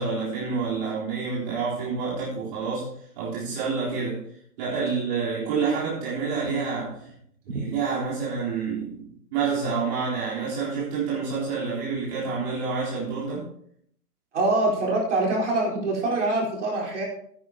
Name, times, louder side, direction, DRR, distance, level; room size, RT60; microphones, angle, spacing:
voice 1, 0.0-2.9 3.2-4.2 4.6-7.0 7.5-13.4, right 5 dB, 25° right, -8 dB, 3.8 m, -28 dB
voice 2, 14.3-17.0, right 2 dB, 45° right, -3 dB, 4.4 m, -24 dB
16.0 x 10.5 x 2.9 m, 0.65 s
figure-of-eight pair, 135°, 48 cm